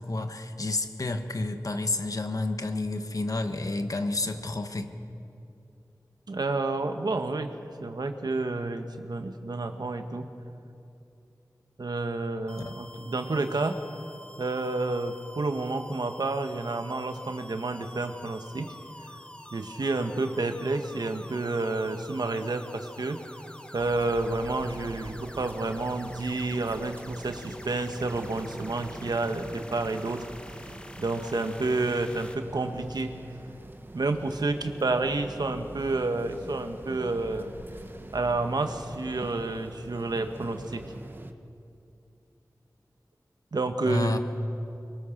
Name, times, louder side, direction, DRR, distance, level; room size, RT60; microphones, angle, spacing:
voice 1, 0.0-4.9 12.6-12.7 43.9-44.2, left 2 dB, 60° left, 7 dB, 1.5 m, -30 dB
voice 2, 6.3-7.5 7.8-10.3 11.8-13.8 14.4-18.7 19.5-23.2 23.7-30.3 31.0-33.1 33.9-37.5 38.1-40.8 43.5-44.2, right 3 dB, 80° right, 7 dB, 1.4 m, -30 dB
sound 1, 12.5-32.3, left 1 dB, 15° left, 1.4 m, -47 dB
sound 2, 23.7-41.3, right 1 dB, 30° right, 1.4 m, -44 dB
24.0 x 23.0 x 6.7 m, 2.7 s
wide cardioid pair, 60°, 7 cm